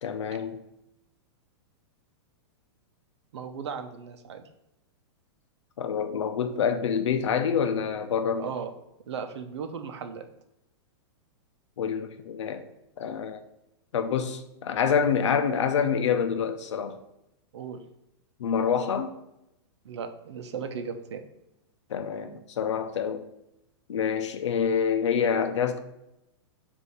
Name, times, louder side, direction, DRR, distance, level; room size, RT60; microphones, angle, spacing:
voice 1, 0.0-0.6 5.8-8.5 11.8-12.6 13.0-13.4 13.9-17.0 18.4-19.1 21.9-23.2 23.9-25.8, left 7 dB, 85° left, 0.7 m, -27 dB
voice 2, 3.3-4.4 8.4-8.7 9.1-10.3 17.5-17.8 19.8-21.2, right 6 dB, 70° right, 0.8 m, -36 dB
6.9 x 2.8 x 4.8 m
supercardioid pair, 180°, 15 cm